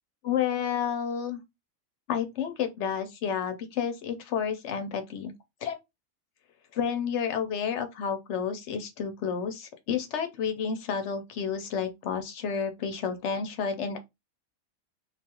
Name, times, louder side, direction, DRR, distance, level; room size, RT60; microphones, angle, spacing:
voice 1, 0.2-1.4 2.1-5.3 5.6-5.8 6.7-14.0, left 7 dB, 65° left, 0.8 m, -30 dB
2.4 x 2.3 x 2.8 m
omnidirectional pair, 1.4 m